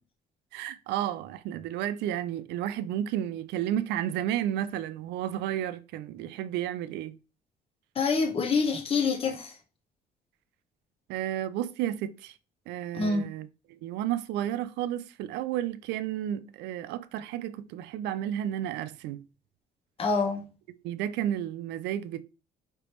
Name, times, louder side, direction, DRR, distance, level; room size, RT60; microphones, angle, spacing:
voice 1, 0.5-7.2 11.1-12.4 12.7-19.2 20.7-22.2, right 11 dB, 85° right, 0.5 m, -32 dB
voice 2, 7.9-9.5 12.9-13.3 20.0-20.4, left 4 dB, 35° left, 1.1 m, -26 dB
4.9 x 3.4 x 3.0 m
cardioid pair, 110°, 17 cm